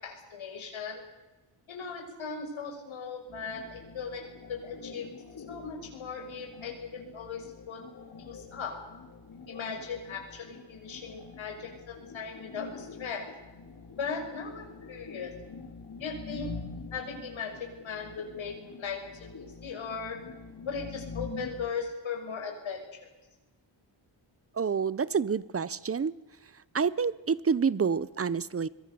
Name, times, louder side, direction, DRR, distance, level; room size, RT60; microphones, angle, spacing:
voice 1, 0.0-1.0 1.7-4.2 4.5-5.1 5.5-7.8 8.2-8.8 9.5-13.3 14.0-15.3 16.0-16.5 16.9-20.2 20.7-22.8, left 5 dB, 85° left, 2 dB, 6.5 m, -38 dB
sound 1, 3.3-21.7, left 4 dB, 50° left, 4.7 m, -45 dB
voice 2, 24.6-26.1 26.7-28.7, right 6 dB, 30° right, 19 dB, 0.7 m, -28 dB
26.0 x 22.5 x 6.9 m, 1.1 s
wide cardioid pair, 140°, 46 cm